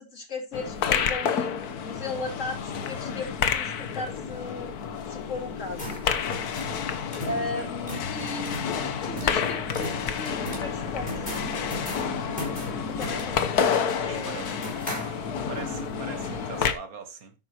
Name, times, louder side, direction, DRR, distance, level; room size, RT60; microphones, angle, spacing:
voice 1, 0.0-1.5 1.8-4.7 5.1-6.0 7.2-11.3 12.9-13.6 14.0-14.6, left 2 dB, 55° left, 2.7 m, -36 dB
sound 1, 0.5-16.7, left 7 dB, 85° left, 1.5 m, -29 dB
sound 2, 5.5-15.7, left 1 dB, 25° left, 4.6 m, -38 dB
voice 2, 6.1-6.5 7.5-7.7 14.0-14.8 15.5-17.3, right 6 dB, 70° right, 1.8 m, -41 dB
sound 3, 10.4-16.7, right 2 dB, 50° right, 3.3 m, -45 dB
11.0 x 8.8 x 2.9 m
omnidirectional pair, 1.6 m